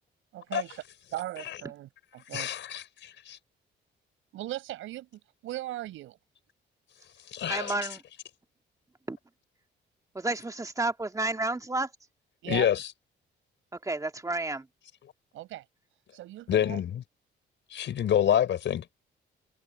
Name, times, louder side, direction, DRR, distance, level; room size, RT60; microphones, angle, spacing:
voice 1, 0.3-0.8 1.1-2.5 4.3-6.2 12.4-12.7 15.3-15.7 16.1-16.8, right 15 dB, 90° right, 6.9 m, -38 dB
voice 2, 2.3-3.4 7.3-7.7 12.5-12.8 16.5-17.0 17.7-18.9, left 10 dB, 70° left, 5.0 m, -27 dB
voice 3, 7.5-8.0 9.1-9.2 10.1-11.9 13.7-14.7, right 2 dB, 15° right, 2.1 m, -31 dB
cardioid pair, 90°, 20 cm